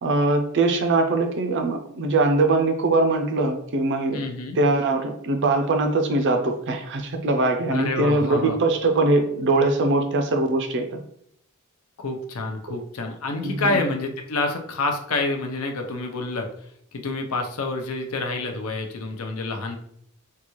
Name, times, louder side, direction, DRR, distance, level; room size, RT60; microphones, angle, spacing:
voice 1, 0.0-4.2 4.6-11.0 13.4-13.8, right 2 dB, 55° right, 7 dB, 0.5 m, -22 dB
voice 2, 4.1-4.6 7.7-8.6 12.0-16.5 16.9-19.8, left 2 dB, 75° left, 3 dB, 0.6 m, -28 dB
3.8 x 2.3 x 3.0 m, 0.69 s
head